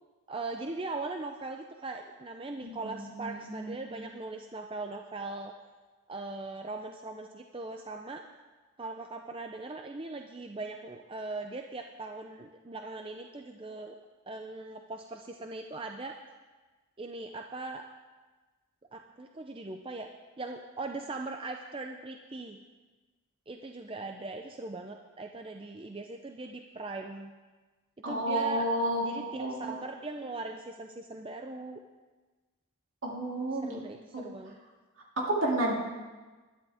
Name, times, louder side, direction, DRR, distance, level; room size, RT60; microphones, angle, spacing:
voice 1, 0.3-5.5 6.1-8.2 8.8-14.0 14.3-16.2 17.0-17.9 18.9-20.1 20.4-22.6 23.5-27.3 28.0-31.8 33.5-34.6, right 3 dB, 25° right, 4 dB, 0.5 m, -40 dB
voice 2, 2.6-4.1 28.0-29.8 33.0-33.8 34.1-34.2 35.3-35.7, right 1 dB, 65° right, -2 dB, 2.7 m, -31 dB
20.0 x 12.0 x 3.5 m, 1.3 s
head